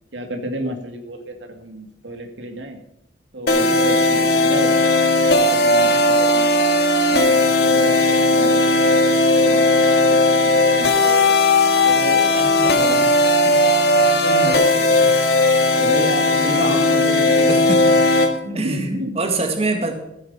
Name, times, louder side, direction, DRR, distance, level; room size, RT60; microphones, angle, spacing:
voice 1, 0.1-2.8 3.3-4.7 5.3-6.7 7.1-11.3 11.8-13.0 14.0-15.1 15.7-17.6 18.4-19.2, right 1 dB, 90° right, 5 dB, 2.1 m, -30 dB
sound 1, 3.5-18.3, left 2 dB, 60° left, 1.9 m, -16 dB
voice 2, 16.4-16.8 17.5-17.8 18.5-18.9 19.2-19.9, right 2 dB, 35° right, 4 dB, 2.0 m, -24 dB
15.5 x 8.3 x 5.6 m, 0.86 s
head